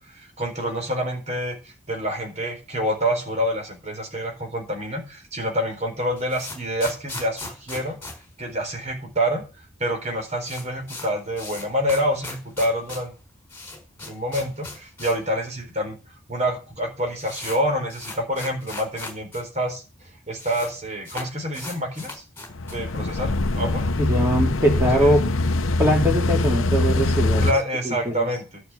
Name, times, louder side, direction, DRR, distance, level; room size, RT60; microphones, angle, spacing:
voice 1, 0.0-8.0 8.4-9.4 9.8-13.1 14.0-16.0 16.3-19.8 20.3-22.2 22.7-23.3 23.6-23.9 24.8-25.1 27.4-28.6, equal, 30° right, 3 dB, 4.2 m, -27 dB
sound 1, 6.2-9.1 9.4-9.5 9.7-9.8 10.1-15.3 15.6-15.7 16.4-16.5 16.7-19.4 19.7-19.8 20.0-20.7 21.0-22.9, left 2 dB, 10° left, 4.7 m, -38 dB
sound 2, 22.5-27.5, left 2 dB, 70° left, 0.9 m, -23 dB
voice 2, 24.0-25.3 25.8-27.5 27.8-28.2, equal, 10° right, 1 dB, 3.4 m, -21 dB
11.5 x 6.0 x 8.9 m, 0.33 s
head